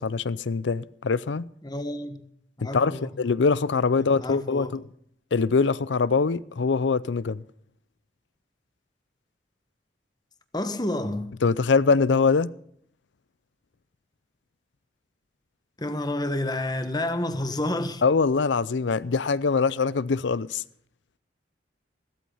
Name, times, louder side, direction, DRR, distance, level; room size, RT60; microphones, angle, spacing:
voice 1, 0.0-1.5 2.6-4.8 5.3-7.4 11.4-12.5 18.0-20.6, left 4 dB, 80° left, 0.5 m, -23 dB
voice 2, 1.6-2.2 2.6-3.1 4.0-4.8 10.5-11.4 15.8-18.0, left 1 dB, 25° left, 1.4 m, -30 dB
15.5 x 14.0 x 5.6 m
head